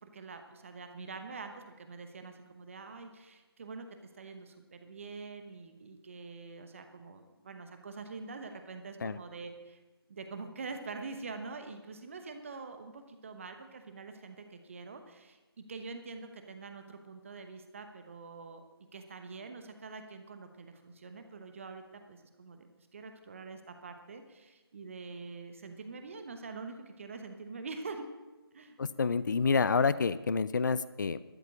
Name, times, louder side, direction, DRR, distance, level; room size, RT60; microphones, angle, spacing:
voice 1, 0.0-3.9 4.2-9.8 10.1-18.6 18.9-22.7 22.9-28.0 28.5-28.8, right 4 dB, 30° right, 7 dB, 1.0 m, -45 dB
voice 2, 28.8-31.2, left 5 dB, 50° left, 16 dB, 0.4 m, -28 dB
13.0 x 7.4 x 8.3 m, 1.2 s
figure-of-eight pair, 160°, 13 cm